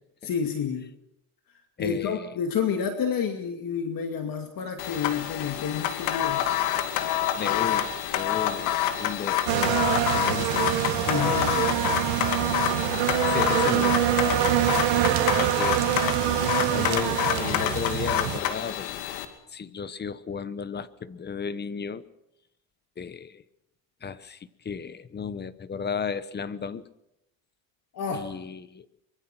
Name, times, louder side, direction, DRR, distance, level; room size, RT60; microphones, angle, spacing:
voice 1, 0.2-0.9 1.8-6.5 11.1-11.8 27.9-28.3, left 7 dB, 45° left, 5 dB, 2.4 m, -29 dB
voice 2, 1.8-2.3 7.4-10.8 11.2-11.5 13.2-14.6 15.6-16.2 16.7-18.9 19.5-22.0 23.0-23.4 24.0-26.8 28.1-28.9, left 6 dB, 20° left, 16 dB, 1.0 m, -34 dB
sound 1, 4.8-19.3, left 11 dB, 75° left, 2.6 m, -28 dB
sound 2, 9.5-18.4, right 12 dB, 65° right, 2.2 m, -25 dB
24.0 x 22.5 x 6.0 m, 0.84 s
cardioid pair, 125°, 49 cm